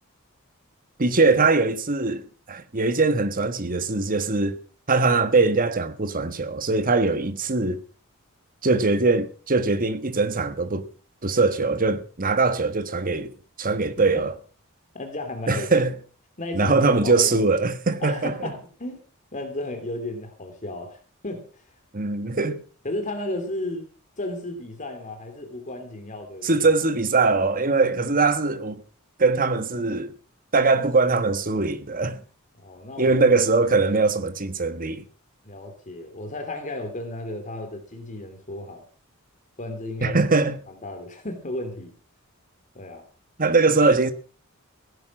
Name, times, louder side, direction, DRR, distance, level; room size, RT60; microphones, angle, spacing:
voice 1, 1.0-4.6 4.9-7.8 8.6-10.8 11.2-13.3 13.6-14.3 15.5-15.9 16.5-18.3 21.9-22.6 26.4-28.8 29.2-30.1 30.5-32.2 33.0-35.0 40.0-40.6 43.4-44.1, right 3 dB, 40° right, 1.3 m, -21 dB
voice 2, 14.9-15.7 16.4-17.4 18.0-19.0 19.3-21.6 22.8-23.9 24.2-26.7 32.6-33.1 35.4-38.8 39.6-40.2 40.7-41.9 42.7-43.0, left 1 dB, 35° left, 3.0 m, -34 dB
16.5 x 10.0 x 6.1 m
head